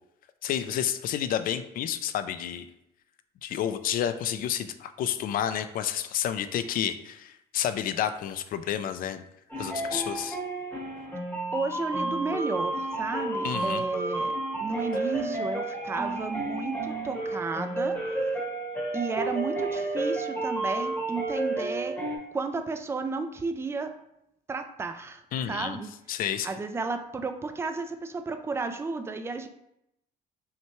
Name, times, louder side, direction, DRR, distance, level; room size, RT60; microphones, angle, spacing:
voice 1, 0.4-2.7 3.4-9.2 9.6-10.4 13.4-13.8 25.3-25.8 26.1-26.5, left 10 dB, 60° left, 11 dB, 0.4 m, -30 dB
sound 1, 9.5-22.2, right 2 dB, 10° left, 1.0 m, -31 dB
voice 2, 11.5-18.3 18.9-22.0 22.3-24.0 24.5-25.9 26.4-29.5, right 4 dB, 15° right, 7 dB, 0.3 m, -33 dB
5.6 x 2.2 x 3.0 m, 0.81 s
cardioid pair, 110°, 17 cm